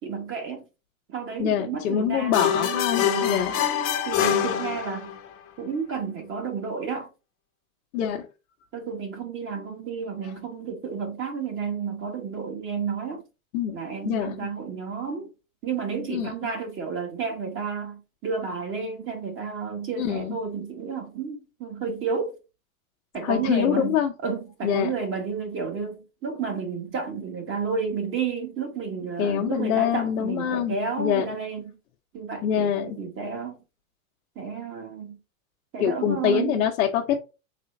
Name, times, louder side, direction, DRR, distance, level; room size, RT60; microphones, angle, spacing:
voice 1, 0.0-0.7 1.1-3.5 4.0-5.2 5.6-7.1 8.7-13.2 13.7-15.3 15.6-22.4 23.1-23.9 24.2-31.8 32.1-33.6 34.3-35.1 35.7-36.6, right 5 dB, 30° right, 1.7 m, -31 dB
voice 2, 1.4-3.5 7.9-8.3 13.5-13.8 14.0-14.4 16.1-16.3 20.0-20.4 23.2-24.1 24.6-24.9 29.2-31.2 32.4-33.0 35.8-37.2, left 9 dB, 65° left, 1.0 m, -25 dB
sound 1, 2.3-5.3, left 10 dB, 30° left, 1.0 m, -25 dB
4.3 x 3.7 x 2.7 m
hypercardioid pair, 135°, 43 cm